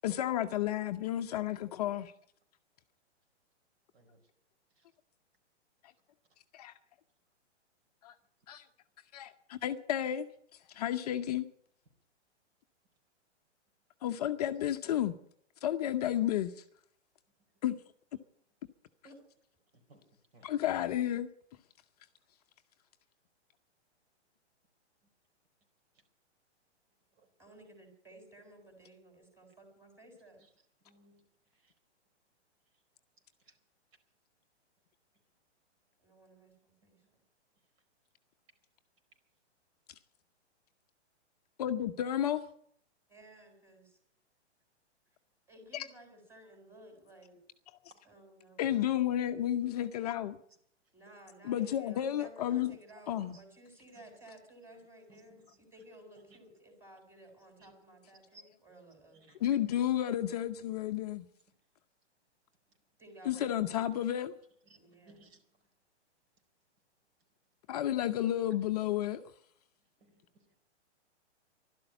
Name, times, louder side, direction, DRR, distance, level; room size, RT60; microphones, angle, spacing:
voice 1, 0.0-2.1 6.6-6.7 8.0-8.1 8.5-8.6 9.1-10.3 10.7-11.5 14.0-15.2 15.6-16.6 17.6-17.8 20.4-21.3 41.6-42.4 45.7-45.9 48.6-50.4 51.4-52.7 53.1-53.4 59.4-61.3 63.2-64.3 67.7-69.2, left 11 dB, 35° left, 0.7 m, -32 dB
voice 2, 27.4-30.4 36.0-37.2 43.1-44.0 45.5-47.4 48.0-48.6 50.9-59.4 63.0-63.8 64.7-65.3, right 1 dB, 5° right, 4.0 m, -56 dB
voice 3, 30.8-31.2 55.1-55.4 56.3-56.4 57.6-57.7 58.3-58.4 59.3-59.4 65.1-65.4 70.0-70.5, right 2 dB, 60° right, 4.6 m, -60 dB
12.0 x 11.5 x 9.9 m
hypercardioid pair, 155°, 35 cm